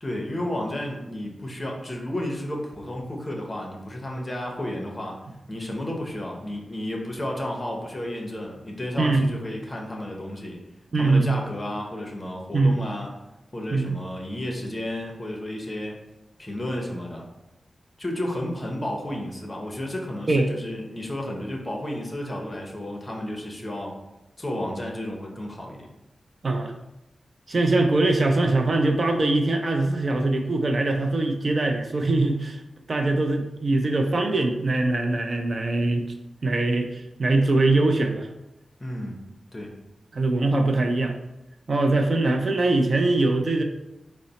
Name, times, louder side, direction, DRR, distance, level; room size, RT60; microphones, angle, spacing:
voice 1, 0.0-5.2 5.5-10.6 11.0-13.1 13.5-16.0 16.4-17.2 18.0-23.9 24.4-25.9 38.8-39.2 39.5-39.7, left 1 dB, 25° left, 0 dB, 0.7 m, -32 dB
voice 2, 10.9-11.4 12.5-12.8 13.7-13.9 20.3-20.5 26.4-26.7 27.5-32.6 32.9-36.0 36.4-38.3 40.1-41.1 41.7-43.6, right 2 dB, 45° right, 4 dB, 0.4 m, -22 dB
3.9 x 2.0 x 3.9 m, 0.92 s
wide cardioid pair, 105°, 0 cm